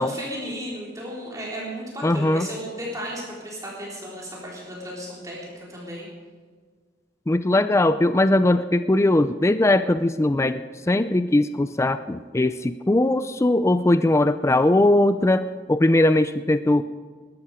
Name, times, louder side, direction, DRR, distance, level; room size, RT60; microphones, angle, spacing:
voice 1, 0.0-6.1, equal, 20° right, -5 dB, 3.8 m, -34 dB
voice 2, 2.0-2.5 7.3-16.8, left 1 dB, 15° left, 12 dB, 0.4 m, -20 dB
20.0 x 13.0 x 4.9 m, 1.5 s
head